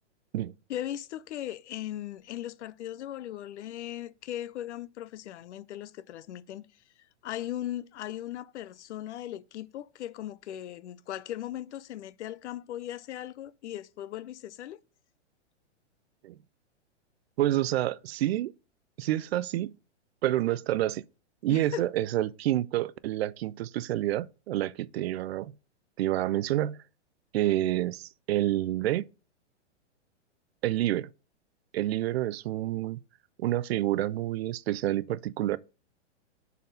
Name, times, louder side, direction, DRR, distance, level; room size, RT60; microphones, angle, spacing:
voice 1, 0.7-6.7 7.2-14.8 21.5-21.8, left 12 dB, 70° left, 0.6 m, -38 dB
voice 2, 17.4-18.5 19.0-19.7 20.2-21.0 21.4-25.5 26.0-26.8 27.3-29.0 30.6-31.1 31.7-33.0 33.4-35.6, right 14 dB, 60° right, 0.5 m, -28 dB
6.3 x 4.1 x 5.4 m
hypercardioid pair, 130°, 36 cm